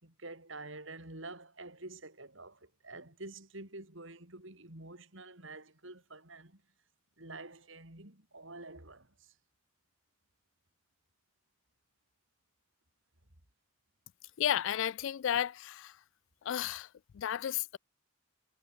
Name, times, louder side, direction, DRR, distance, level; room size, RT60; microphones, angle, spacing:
voice 1, 0.0-6.6 7.2-9.3, right 2 dB, 60° right, 4.5 m, -48 dB
voice 2, 14.4-16.0 16.4-17.8, left 10 dB, 65° left, 0.3 m, -33 dB
head